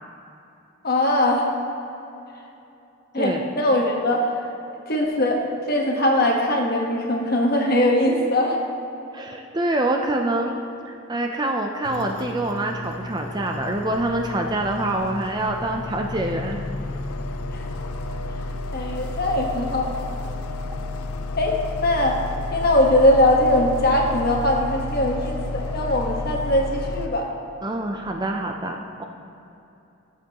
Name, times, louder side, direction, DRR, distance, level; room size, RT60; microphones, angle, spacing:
voice 1, 0.8-1.5 3.1-4.3 4.9-8.6 17.5-17.6 18.7-20.1 21.4-22.2 22.5-27.3, left 1 dB, 45° left, 0 dB, 1.2 m, -21 dB
voice 2, 9.1-10.6 10.9-16.6 27.6-29.0, right 1 dB, 20° right, 3 dB, 0.4 m, -26 dB
sound 1, 11.8-27.1, left 2 dB, 90° left, 0.5 m, -31 dB
13.5 x 7.6 x 2.9 m, 2.9 s
head